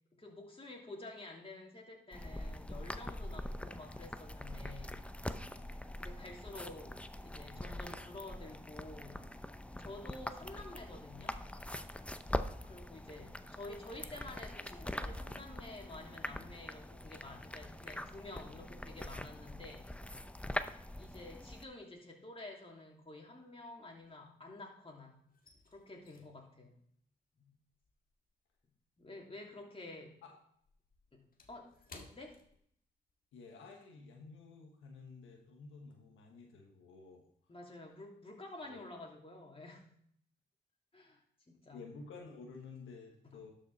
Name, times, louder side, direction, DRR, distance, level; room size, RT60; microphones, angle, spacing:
voice 1, 0.1-5.0 6.0-9.2 9.8-11.4 12.4-19.8 21.0-25.1 25.7-26.7 27.4-27.5 29.0-30.2 31.1-32.4 37.5-39.8 40.9-41.9 43.2-43.4, left 2 dB, 30° left, -1 dB, 3.0 m, -50 dB
sound 1, 2.1-21.6, left 1 dB, 5° left, 0.6 m, -43 dB
sound 2, 23.1-24.7 25.0-29.7 29.9-33.2 33.6-33.7 34.2-34.5, left 3 dB, 45° left, 1.6 m, -61 dB
voice 2, 33.3-37.2 38.7-38.8 41.7-43.5, left 4 dB, 90° left, 1 dB, 1.3 m, -52 dB
12.0 x 5.6 x 4.1 m, 0.66 s
cardioid pair, 55°, 20 cm